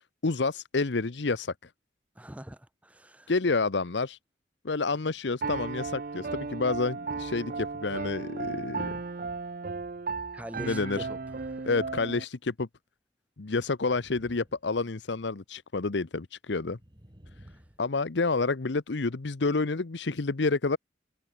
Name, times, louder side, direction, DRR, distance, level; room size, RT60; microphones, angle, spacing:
voice 1, 0.2-1.5 3.3-4.2 4.6-8.9 10.6-11.1 11.6-12.7 13.4-16.8 17.8-20.8, left 3 dB, 75° left, 0.8 m, -29 dB
voice 2, 2.1-3.3 10.3-11.7 17.5-17.6, equal, 10° right, 1.1 m, -44 dB
Piano, 5.4-12.2, right 4 dB, 50° right, 0.6 m, -35 dB
sound 1, 10.8-11.7 12.0-12.2 13.7-15.3 16.7-18.0, equal, 25° right, 2.6 m, -55 dB
head